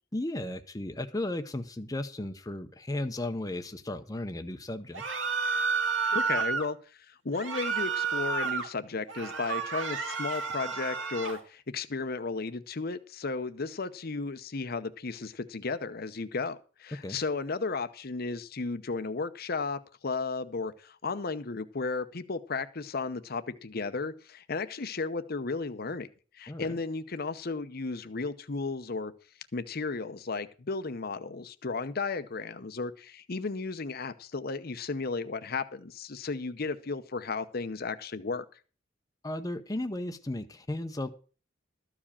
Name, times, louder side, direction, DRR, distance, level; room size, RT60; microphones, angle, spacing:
voice 1, 0.1-5.0 17.0-17.2 26.5-26.8 39.2-41.1, left 1 dB, 20° left, 0.7 m, -35 dB
sound 1, 4.9-6.7 7.3-8.7 9.1-11.4, right 5 dB, 75° right, 1.9 m, -31 dB
voice 2, 6.1-26.1 26.3-29.1 29.5-38.5, left 4 dB, 50° left, 0.8 m, -34 dB
13.5 x 4.9 x 8.5 m
head